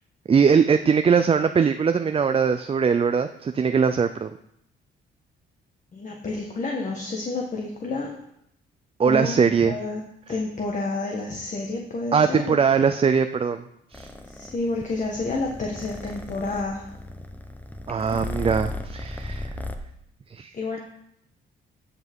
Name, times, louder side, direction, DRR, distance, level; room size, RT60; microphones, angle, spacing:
voice 1, 0.3-4.3 9.0-9.8 12.1-13.6 13.9-14.1 17.9-19.5 20.3-20.5, right 6 dB, 30° right, 9 dB, 0.5 m, -21 dB
voice 2, 5.9-8.1 9.0-10.0 10.3-12.6 14.3-16.9 20.5-20.8, left 3 dB, 40° left, 0 dB, 1.5 m, -29 dB
Purr, 13.9-19.8, left 2 dB, 10° left, 0.9 m, -36 dB
14.5 x 5.9 x 3.7 m, 0.75 s
cardioid pair, 90°, 20 cm